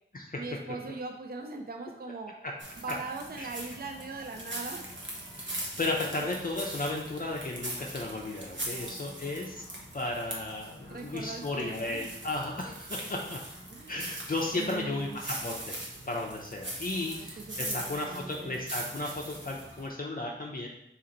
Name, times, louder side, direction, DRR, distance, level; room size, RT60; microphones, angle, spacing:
voice 1, 0.4-2.4 2.8-4.9 8.6-9.4 10.9-12.1 13.7-14.1 14.6-15.2 17.0-18.6, right 3 dB, 45° right, 4 dB, 0.4 m, -41 dB
sound 1, 2.6-19.9, right 1 dB, 65° right, 1.0 m, -41 dB
voice 2, 5.4-9.6 9.9-13.4 13.9-15.8 16.1-20.7, left 2 dB, 45° left, -1 dB, 0.5 m, -34 dB
4.2 x 2.9 x 3.8 m, 0.82 s
wide cardioid pair, 50°, 21 cm